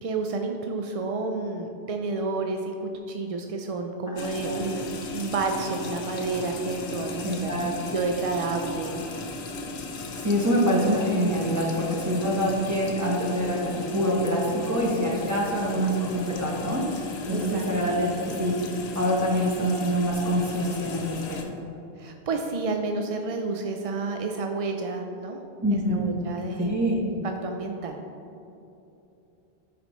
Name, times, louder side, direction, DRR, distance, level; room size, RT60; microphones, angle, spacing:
voice 1, 0.0-9.0 17.3-17.6 22.0-25.4 25.7-26.8 27.1-28.0, right 3 dB, 55° right, 3 dB, 0.4 m, -30 dB
voice 2, 4.1-4.7 7.2-7.7 10.1-21.6 25.6-26.1 26.5-27.0, equal, 15° right, -4 dB, 1.0 m, -26 dB
sound 1, 4.2-21.4, left 3 dB, 90° left, 1.0 m, -37 dB
9.0 x 5.0 x 3.1 m, 2.9 s
omnidirectional pair, 1.1 m